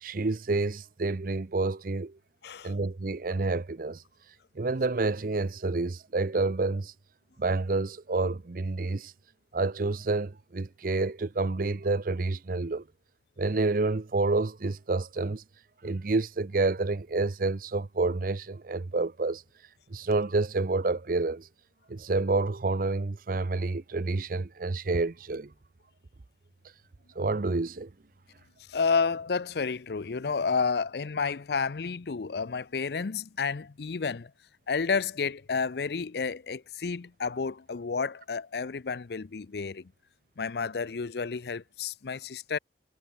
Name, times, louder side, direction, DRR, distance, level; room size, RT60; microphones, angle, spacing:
voice 1, 0.0-2.1 2.6-4.0 4.6-6.9 7.4-9.1 9.5-12.8 13.4-15.4 15.8-19.4 19.9-21.5 21.9-25.5 27.2-27.9, right 3 dB, 50° right, 0.6 m, -28 dB
voice 2, 2.4-2.7 28.7-34.3 34.7-39.9 40.4-42.6, left 5 dB, 65° left, 0.5 m, -30 dB
head